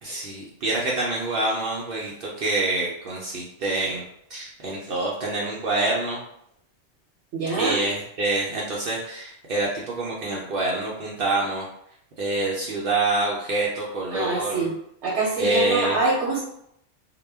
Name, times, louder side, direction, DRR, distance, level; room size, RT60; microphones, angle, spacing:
voice 1, 0.0-4.0 4.3-6.2 7.5-11.6 12.2-14.7 15.4-16.0, right 2 dB, 60° right, -4 dB, 0.7 m, -26 dB
voice 2, 7.3-7.8 14.1-14.7 15.0-16.4, right 2 dB, 85° right, -3 dB, 0.9 m, -25 dB
2.1 x 2.1 x 3.3 m, 0.73 s
omnidirectional pair, 1.2 m